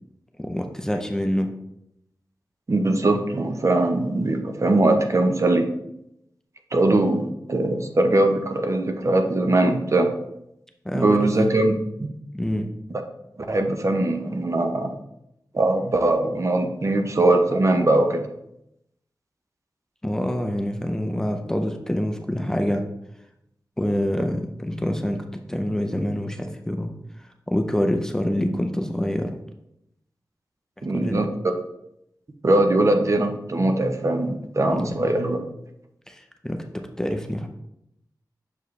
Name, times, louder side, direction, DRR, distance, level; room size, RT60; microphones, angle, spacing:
voice 1, 0.4-1.5 10.8-11.3 12.3-12.7 20.0-22.9 23.8-26.9 27.5-29.3 30.8-31.2 34.7-35.1 36.1-37.5, equal, 10° left, 5 dB, 0.5 m, -26 dB
voice 2, 2.7-5.7 6.7-10.1 10.9-11.8 13.5-14.9 15.5-18.2 30.8-31.3 32.4-35.4, right 2 dB, 45° right, 5 dB, 0.7 m, -21 dB
6.7 x 4.8 x 3.1 m, 0.81 s
wide cardioid pair, 95°, 7 cm